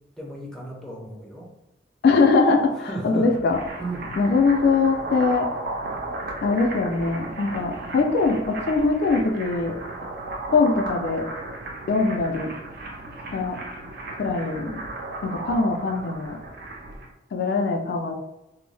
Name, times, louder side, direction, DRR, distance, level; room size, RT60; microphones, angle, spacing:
voice 1, 0.2-1.5 2.8-3.3 3.8-4.2, right 2 dB, 5° left, -3 dB, 0.5 m, -34 dB
voice 2, 2.0-3.6 4.2-5.5 6.4-9.8 10.5-11.3 11.9-12.5 13.3-13.6 14.2-14.8 15.2-16.4 17.3-18.1, left 3 dB, 65° left, 3 dB, 0.3 m, -22 dB
sound 1, 3.2-17.1, right 2 dB, 60° right, 0.6 m, -35 dB
2.6 x 2.0 x 3.2 m, 0.93 s
head